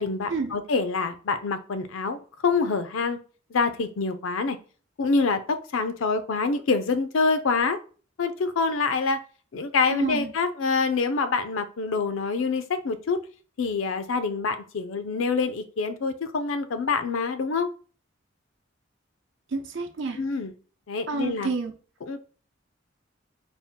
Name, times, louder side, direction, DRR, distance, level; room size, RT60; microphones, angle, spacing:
voice 1, 0.0-3.2 3.5-4.6 5.0-7.8 8.2-9.2 9.5-13.2 13.6-17.7 20.1-20.5 20.9-21.5 22.1-22.2, left 4 dB, 80° left, 10 dB, 0.5 m, -26 dB
voice 2, 9.9-10.3 19.5-20.2 21.1-21.7, right 4 dB, 65° right, 4 dB, 0.7 m, -29 dB
4.2 x 2.4 x 3.5 m, 0.39 s
head